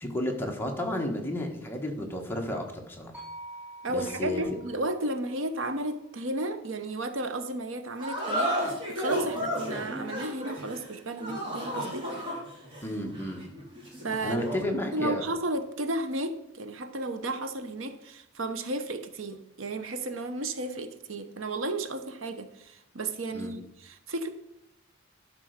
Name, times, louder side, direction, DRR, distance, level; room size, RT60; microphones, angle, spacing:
voice 1, 0.0-3.1 3.9-4.4 12.8-13.4 14.2-15.3 23.3-23.5, left 1 dB, 10° left, 1 dB, 1.4 m, -32 dB
sound 1, 3.1-7.4, right 1 dB, 5° right, 3.9 m, -49 dB
voice 2, 3.8-12.1 14.0-14.4 14.9-24.3, right 2 dB, 75° right, 8 dB, 0.9 m, -33 dB
sound 2, 8.0-14.7, equal, 25° right, 3.0 m, -33 dB
12.0 x 4.5 x 6.6 m, 0.81 s
head